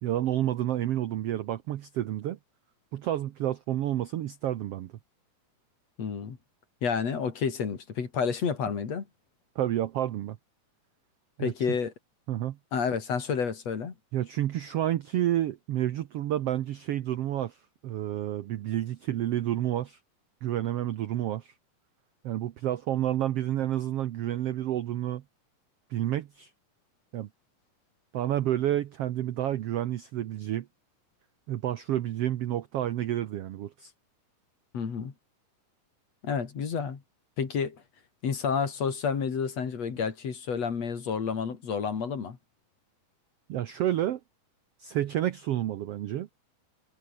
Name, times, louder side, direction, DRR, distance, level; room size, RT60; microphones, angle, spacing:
voice 1, 0.0-2.4 2.9-4.9 9.5-10.4 11.4-11.5 12.3-12.6 14.1-17.6 17.8-20.0 20.4-21.5 22.2-25.2 25.9-26.5 27.1-27.3 28.1-30.7 31.5-33.9 43.5-44.2 44.8-46.3, right 12 dB, 70° right, 1.4 m, -29 dB
voice 2, 6.0-6.4 6.8-9.0 11.4-11.9 12.7-13.9 34.7-35.1 36.2-37.0 37.4-37.8 38.2-42.4, left 6 dB, 50° left, 3.9 m, -30 dB
omnidirectional pair, 3.9 m